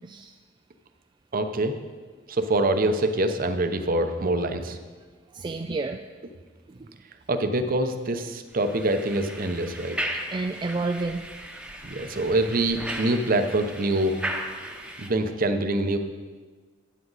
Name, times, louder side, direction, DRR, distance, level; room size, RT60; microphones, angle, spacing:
voice 1, 0.0-0.3 5.3-6.0 6.7-6.9 10.3-11.3, right 3 dB, 25° right, 5 dB, 0.3 m, -30 dB
voice 2, 1.3-1.8 2.3-4.8 7.3-10.0 11.8-14.2 15.0-16.0, right 1 dB, 50° right, 8 dB, 0.8 m, -25 dB
sound 1, 8.5-15.1, right 1 dB, 5° right, 1.0 m, -36 dB
12.5 x 9.2 x 4.1 m, 1.4 s
head